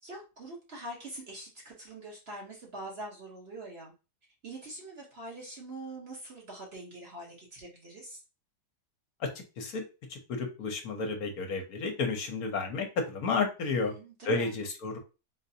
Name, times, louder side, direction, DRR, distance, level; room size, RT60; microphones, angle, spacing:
voice 1, 0.0-3.9 4.4-8.2 13.6-14.6, right 2 dB, 45° right, -2 dB, 1.0 m, -44 dB
voice 2, 10.1-13.9 14.3-15.0, left 4 dB, 70° left, 4 dB, 1.1 m, -31 dB
3.9 x 2.5 x 2.6 m, 0.31 s
omnidirectional pair, 1.7 m